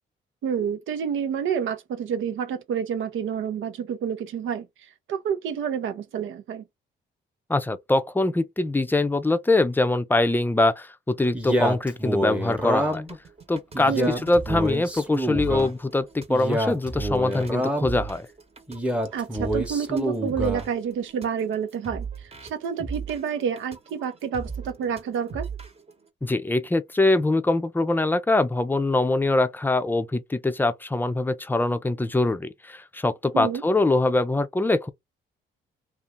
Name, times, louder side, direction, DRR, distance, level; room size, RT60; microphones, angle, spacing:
voice 1, 0.4-4.7 5.1-6.6 13.9-14.2 19.1-22.1 22.4-25.5 33.3-33.6, right 7 dB, 75° right, 0.8 m, -28 dB
voice 2, 7.5-13.0 13.5-18.3 26.2-34.9, left 2 dB, 10° left, 0.5 m, -23 dB
Male speech man speaking, 11.3-13.2 13.7-15.7 16.3-18.0 18.7-20.7, equal, 5° right, 0.9 m, -27 dB
sound 1, 12.8-25.9, right 5 dB, 30° right, 1.1 m, -37 dB
2.7 x 2.5 x 3.5 m
cardioid pair, 90°, 20 cm